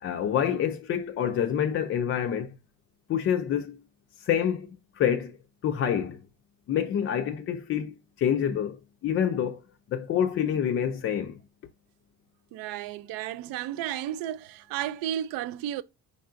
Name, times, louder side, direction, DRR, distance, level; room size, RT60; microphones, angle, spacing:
voice 1, 0.0-2.5 3.1-3.8 4.2-5.4 5.6-6.2 6.7-8.8 9.0-9.6 9.9-11.4, left 9 dB, 40° left, 0.4 m, -27 dB
voice 2, 12.5-15.8, right 11 dB, 75° right, 0.5 m, -33 dB
5.3 x 3.6 x 2.5 m
cardioid pair, 155°, 34 cm